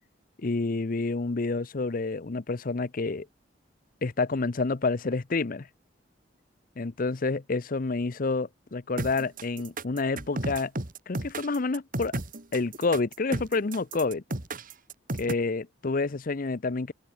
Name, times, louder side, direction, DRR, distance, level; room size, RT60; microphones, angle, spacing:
voice 1, 0.4-3.3 4.0-5.7 6.8-10.7 11.1-12.1 12.5-14.2 15.2-16.9, left 3 dB, 50° left, 0.7 m, -28 dB
sound 1, 9.0-15.3, right 2 dB, 50° right, 2.5 m, -33 dB
head